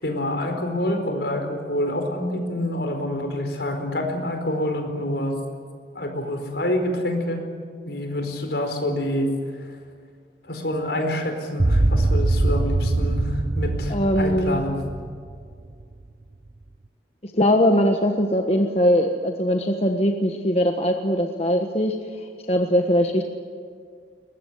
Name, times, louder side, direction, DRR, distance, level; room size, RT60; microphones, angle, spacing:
voice 1, 0.0-5.4 5.9-7.4 7.8-9.3 10.5-14.8, left 1 dB, 70° left, 5 dB, 4.7 m, -27 dB
sound 1, 11.6-15.9, right 2 dB, 40° right, 0.8 m, -22 dB
voice 2, 13.9-14.6 17.2-22.0 22.5-23.2, equal, 35° left, 4 dB, 1.4 m, -21 dB
23.0 x 20.5 x 8.2 m, 2.2 s
head